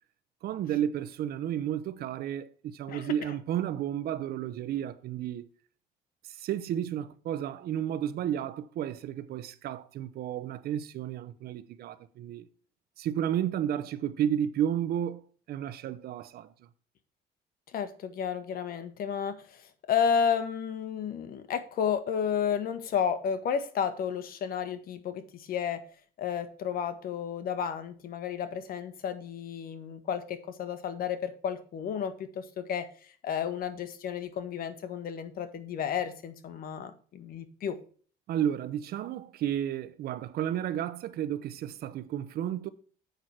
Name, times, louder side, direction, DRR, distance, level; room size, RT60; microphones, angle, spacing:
voice 1, 0.4-5.5 6.2-12.5 13.0-15.2 15.5-16.5 38.3-42.7, right 10 dB, 65° right, 0.8 m, -32 dB
voice 2, 2.9-3.3 17.7-25.8 26.2-32.9 33.2-37.8, left 7 dB, 60° left, 1.5 m, -32 dB
8.1 x 5.8 x 4.6 m
cardioid pair, 110°, 17 cm